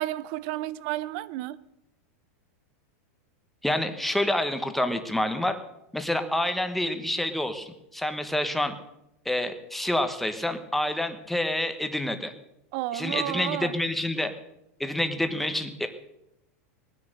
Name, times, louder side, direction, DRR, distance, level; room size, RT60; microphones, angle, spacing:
voice 1, 0.0-1.6 12.7-13.8, right 15 dB, 45° right, 0.6 m, -31 dB
voice 2, 3.6-5.6 5.9-8.7 9.2-12.3 12.9-14.3 14.8-15.9, left 1 dB, ahead, 1.1 m, -28 dB
19.5 x 9.9 x 6.5 m
supercardioid pair, 160°, 8 cm